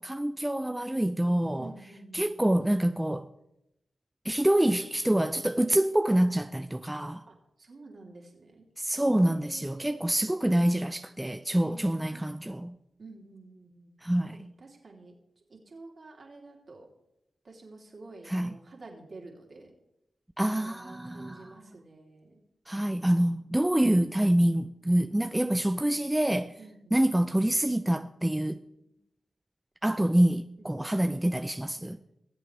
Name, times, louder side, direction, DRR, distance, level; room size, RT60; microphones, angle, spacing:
voice 1, 0.0-1.7 2.1-3.3 4.2-7.2 8.8-12.8 14.0-14.4 18.2-18.6 20.4-21.6 22.7-26.6 26.9-28.6 29.8-32.0, right 1 dB, 15° right, 0.6 m, -26 dB
voice 2, 1.6-2.3 7.3-8.6 9.0-10.0 11.5-12.3 13.0-13.9 14.3-15.1 15.5-16.9 17.4-19.7 20.5-22.4 26.6-27.0 30.6-30.9, right 3 dB, 55° right, 3.0 m, -49 dB
19.5 x 7.8 x 3.3 m
supercardioid pair, 40°, 0 cm